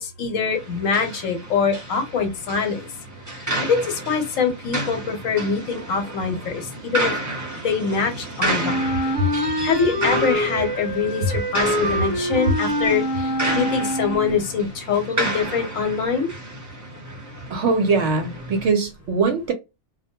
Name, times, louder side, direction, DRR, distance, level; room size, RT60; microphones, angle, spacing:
voice 1, 0.0-2.8 3.6-7.1 7.6-8.8 9.6-11.2 11.5-16.3, left 5 dB, 75° left, 1.1 m, -24 dB
sound 1, 0.5-18.7, right 1 dB, 20° right, 0.5 m, -31 dB
Wind instrument woodwind instrument, 8.6-14.4, equal, 10° left, 0.9 m, -25 dB
voice 2, 17.5-19.5, right 3 dB, 65° right, 0.8 m, -21 dB
2.3 x 2.1 x 2.8 m
omnidirectional pair, 1.4 m